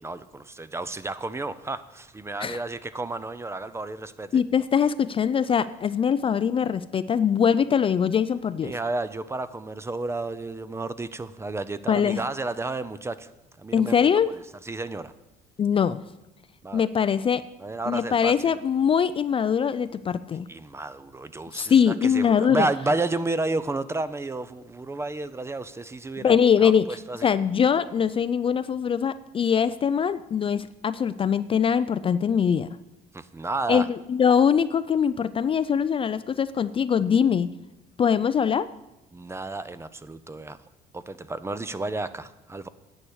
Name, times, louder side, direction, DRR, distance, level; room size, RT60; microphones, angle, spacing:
voice 1, 0.0-4.3 8.6-13.3 13.6-14.1 14.6-15.1 16.6-16.8 17.6-18.3 20.5-27.3 33.1-33.9 39.1-40.6 40.9-42.7, right 2 dB, 15° right, 14 dB, 0.6 m, -31 dB
voice 2, 4.3-8.7 11.9-12.2 13.7-14.3 15.6-16.0 16.7-17.4 17.9-20.5 21.5-22.7 26.2-26.9 27.2-32.7 33.7-37.5 38.0-38.7, left 7 dB, 30° left, 14 dB, 0.4 m, -22 dB
9.8 x 8.5 x 6.4 m, 0.98 s
cardioid pair, 110°, 17 cm